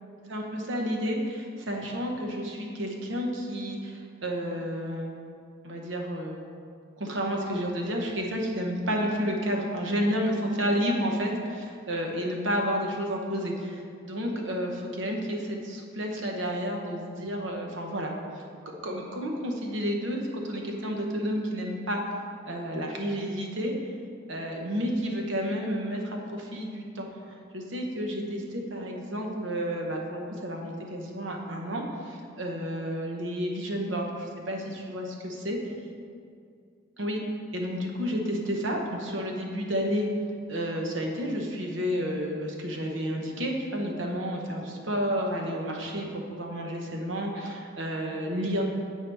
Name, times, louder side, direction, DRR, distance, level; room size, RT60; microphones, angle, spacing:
voice 1, 0.3-5.2 5.6-6.4 7.0-18.1 18.8-22.1 22.5-23.7 24.3-27.1 27.5-35.6 37.0-37.2 37.5-40.1 40.5-48.6, equal, 65° right, 1 dB, 0.8 m, -31 dB
8.3 x 4.6 x 3.4 m, 2.3 s
head